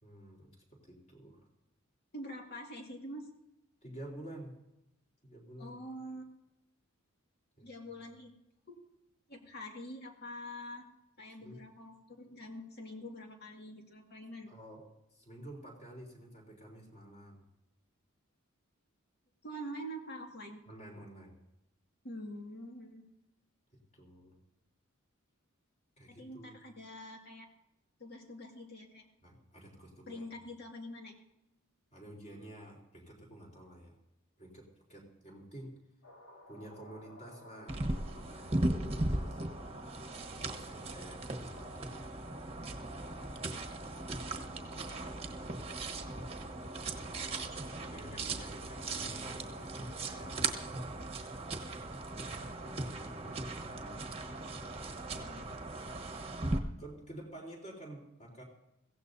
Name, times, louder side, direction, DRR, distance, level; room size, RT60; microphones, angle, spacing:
voice 1, 0.0-1.5 3.8-4.6 5.2-5.8 7.6-7.7 11.4-11.6 14.5-14.9 15.1-17.5 20.7-21.4 23.7-24.4 26.0-26.6 29.2-30.4 31.9-34.0 34.4-35.7 36.5-39.4 40.3-42.0 44.6-45.4 47.8-50.6 52.1-54.1 55.4-55.5 56.8-58.4, right 1 dB, 35° left, -1 dB, 3.8 m, -51 dB
voice 2, 2.1-3.3 5.6-6.3 7.6-8.3 8.7-8.8 9.3-10.9 11.2-14.5 19.4-20.6 22.0-23.0 26.1-27.5 28.0-29.1 30.1-31.1 55.1-55.5, equal, 50° left, 1 dB, 2.1 m, -45 dB
sound 1, 36.0-50.3, left 2 dB, 65° left, 3.1 m, -55 dB
sound 2, 37.7-56.6, right 2 dB, 30° right, 1.2 m, -38 dB
22.0 x 16.5 x 2.7 m, 0.90 s
head